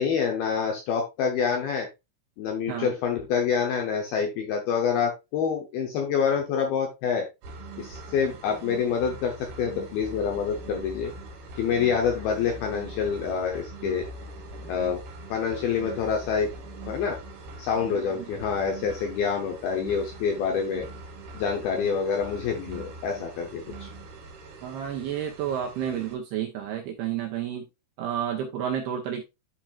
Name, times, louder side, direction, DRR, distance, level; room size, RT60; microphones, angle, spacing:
voice 1, 0.0-1.9 2.4-7.3 7.8-11.1 11.6-14.1 14.7-15.0 15.3-16.5 16.9-17.2 17.6-20.9 21.3-23.9, left 6 dB, 80° left, 2.2 m, -27 dB
sound 1, 7.4-26.2, right 2 dB, 60° right, 3.5 m, -42 dB
voice 2, 24.6-27.7 28.0-29.2, right 9 dB, 80° right, 2.4 m, -30 dB
11.5 x 4.4 x 2.4 m
omnidirectional pair, 5.4 m